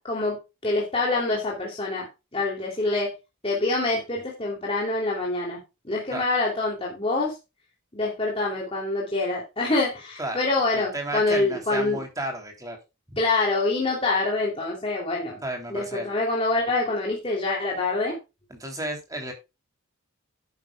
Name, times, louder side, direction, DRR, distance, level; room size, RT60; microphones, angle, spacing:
voice 1, 0.0-3.1 3.4-5.6 5.8-7.3 7.9-12.0 13.2-15.4 15.7-18.2, left 2 dB, 25° left, -3 dB, 3.2 m, -26 dB
voice 2, 10.7-12.8 15.4-16.1 18.5-19.3, right 1 dB, 15° right, 3 dB, 3.5 m, -33 dB
11.0 x 10.5 x 2.4 m, 0.26 s
head